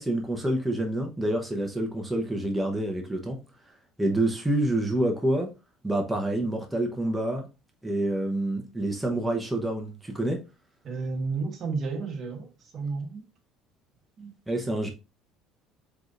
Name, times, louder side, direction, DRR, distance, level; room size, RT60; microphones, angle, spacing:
voice 1, 0.0-3.4 4.0-5.5 5.8-7.5 7.8-10.4 14.5-14.9, right 1 dB, 5° right, 0.8 m, -27 dB
voice 2, 10.8-13.2 14.2-14.3, right 4 dB, 40° right, 1.4 m, -32 dB
4.8 x 3.9 x 2.5 m
cardioid pair, 130°, 0 cm